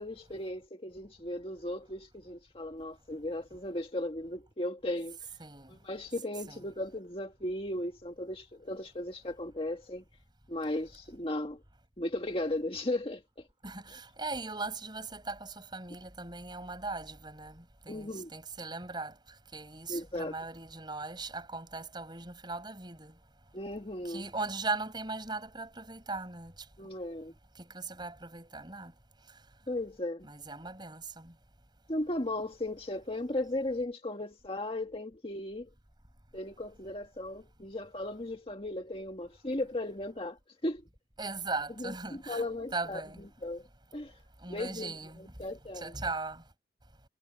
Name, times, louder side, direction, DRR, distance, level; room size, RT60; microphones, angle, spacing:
voice 1, 0.0-5.2 5.7-10.0 10.5-11.6 12.0-13.2 17.9-18.3 19.9-20.4 23.5-24.2 26.8-27.3 29.7-30.3 31.9-35.7 36.3-40.8 41.8-43.0 43.4-43.6 43.9-44.1 44.5-45.9, left 1 dB, 30° left, 1.9 m, -36 dB
voice 2, 5.4-5.8 6.5-6.6 13.6-19.1 19.5-23.1 24.0-26.5 27.6-28.9 30.2-31.3 41.2-42.4 42.7-43.3 44.4-45.3 45.7-46.4, right 3 dB, 25° right, 7.5 m, -39 dB
head